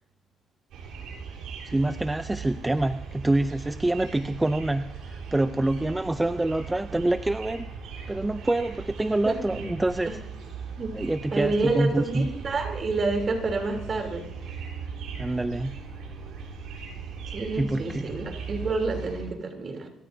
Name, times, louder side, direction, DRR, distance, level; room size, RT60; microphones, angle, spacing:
sound 1, 0.7-19.3, right 5 dB, 85° right, 3.7 m, -39 dB
voice 1, 1.7-7.7 8.1-10.2 10.9-12.3 15.2-15.8 17.5-18.1, right 2 dB, 15° right, 11 dB, 0.5 m, -26 dB
voice 2, 9.2-9.7 10.8-11.0 11.3-14.7 17.3-19.9, right 3 dB, 45° right, 4 dB, 3.2 m, -29 dB
26.5 x 14.0 x 2.7 m, 0.76 s
cardioid pair, 90°, 0 cm